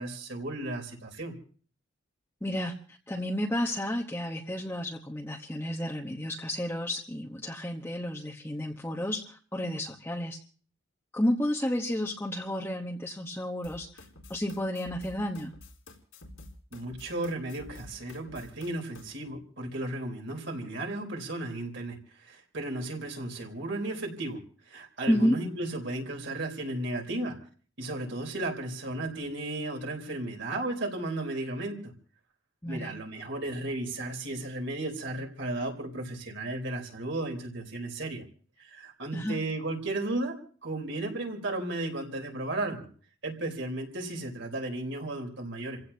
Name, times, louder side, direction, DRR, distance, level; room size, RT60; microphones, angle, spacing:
voice 1, 0.0-1.3 16.7-24.4 24.7-27.4 27.8-31.9 32.7-38.2 38.6-40.4 40.6-42.9 43.2-45.8, right 2 dB, 65° right, 2 dB, 3.7 m, -34 dB
voice 2, 2.4-10.4 11.1-14.0 14.3-15.5 25.1-25.4 32.6-32.9 39.1-39.4, left 1 dB, 10° left, -1 dB, 1.0 m, -31 dB
sound 1, 13.6-19.0, left 2 dB, 85° left, 3.9 m, -49 dB
29.5 x 16.0 x 2.8 m, 0.42 s
head